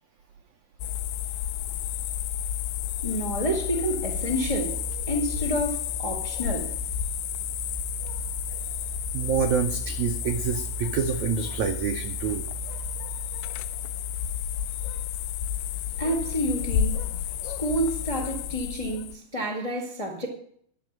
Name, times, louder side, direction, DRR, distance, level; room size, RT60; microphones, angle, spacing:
sound 1, 0.8-19.2, left 7 dB, 85° left, 2.5 m, -31 dB
voice 1, 3.0-4.8 5.1-6.8 16.0-17.0 17.4-20.3, equal, 65° left, 0.3 m, -29 dB
voice 2, 9.1-12.4, right 6 dB, 85° right, 1.6 m, -27 dB
11.0 x 6.9 x 7.4 m
omnidirectional pair, 4.4 m